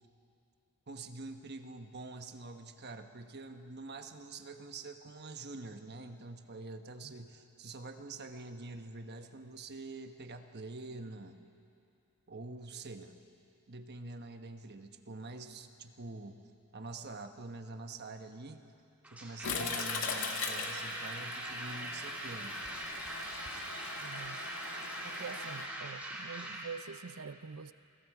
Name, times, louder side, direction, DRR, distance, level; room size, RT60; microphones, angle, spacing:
voice 1, 0.9-11.4 12.3-13.2 13.7-16.4 16.7-18.6 19.1-22.6, right 3 dB, 50° right, 6 dB, 1.2 m, -46 dB
sound 1, 19.0-26.7, right 1 dB, 5° right, 3.0 m, -41 dB
Toilet flush, 19.4-25.7, left 5 dB, 65° left, 2.0 m, -40 dB
voice 2, 24.0-24.4 25.0-27.7, right 5 dB, 70° right, 14 dB, 0.6 m, -45 dB
29.0 x 22.5 x 4.9 m, 2.6 s
head